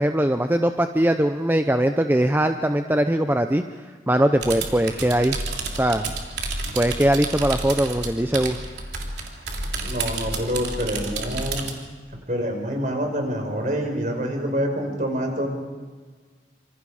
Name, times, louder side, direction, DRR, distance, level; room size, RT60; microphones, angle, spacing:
voice 1, 0.0-3.6 4.1-5.4 5.8-6.1 6.7-8.6, right 1 dB, 10° right, 7 dB, 0.7 m, -21 dB
sound 1, 4.4-11.7, right 3 dB, 70° right, 3.4 m, -30 dB
voice 2, 9.8-11.6 12.3-15.5, equal, 45° right, 3 dB, 5.2 m, -26 dB
27.0 x 26.5 x 5.0 m, 1.5 s
head